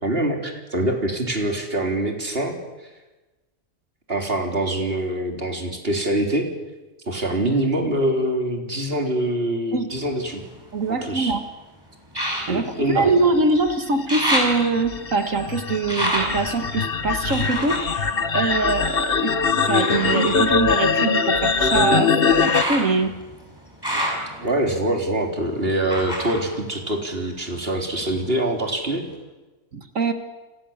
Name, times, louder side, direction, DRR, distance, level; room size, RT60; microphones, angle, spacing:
voice 1, 0.0-2.6 4.1-6.5 7.1-10.4 11.0-11.3 12.5-13.1 23.9-24.0 24.4-29.0, right 1 dB, 40° right, 2 dB, 4.1 m, -24 dB
sound 1, 9.9-11.3 12.1-13.6 13.9-19.0 19.7-27.5 27.8-28.7 29.1-29.2, equal, 15° right, 7.0 m, -30 dB
voice 2, 10.7-11.4 12.5-19.4 19.7-23.1 29.7-30.1, right 3 dB, 65° right, 7 dB, 2.1 m, -23 dB
sound 2, 13.3-22.6, left 5 dB, 45° left, 1.5 m, -22 dB
29.5 x 25.5 x 7.4 m, 1.2 s
omnidirectional pair, 1.5 m